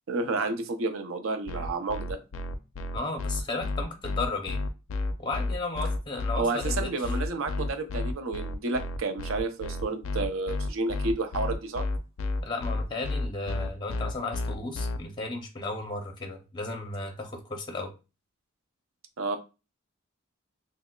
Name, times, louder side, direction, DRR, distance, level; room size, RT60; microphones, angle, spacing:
voice 1, 0.1-2.2 6.4-11.8 19.2-19.4, right 3 dB, 75° right, 7 dB, 0.6 m, -30 dB
sound 1, 1.5-15.0, left 2 dB, 80° left, 0.4 m, -31 dB
voice 2, 2.9-4.6 5.2-7.1 12.4-17.9, left 2 dB, 20° left, 3 dB, 0.6 m, -34 dB
5.9 x 2.0 x 2.2 m, 0.30 s
head